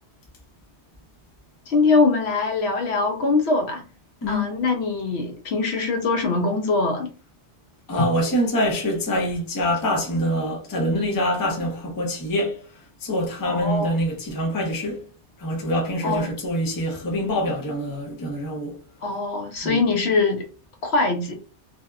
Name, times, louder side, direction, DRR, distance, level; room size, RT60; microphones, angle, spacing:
voice 1, 1.7-3.8 4.3-7.1 13.4-13.9 16.0-16.3 19.0-20.4 20.8-21.3, left 3 dB, 70° left, 0.8 m, -22 dB
voice 2, 4.2-4.5 7.9-12.6 13.0-15.0 15.4-18.8 19.6-19.8, equal, 25° left, 0.5 m, -25 dB
2.7 x 2.1 x 2.3 m
omnidirectional pair, 1.2 m